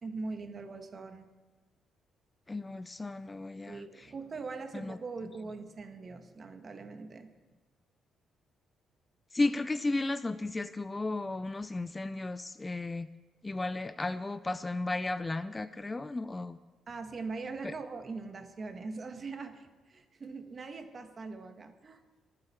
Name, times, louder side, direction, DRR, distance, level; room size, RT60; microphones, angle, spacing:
voice 1, 0.0-1.3 3.7-7.3 16.9-22.2, right 4 dB, 40° right, 6 dB, 1.5 m, -42 dB
voice 2, 2.5-3.9 4.7-5.0 9.3-13.1 13.4-16.6 17.6-17.7, left 2 dB, 20° left, 14 dB, 0.4 m, -34 dB
23.0 x 7.7 x 4.4 m, 1.3 s
cardioid pair, 90°, 0 cm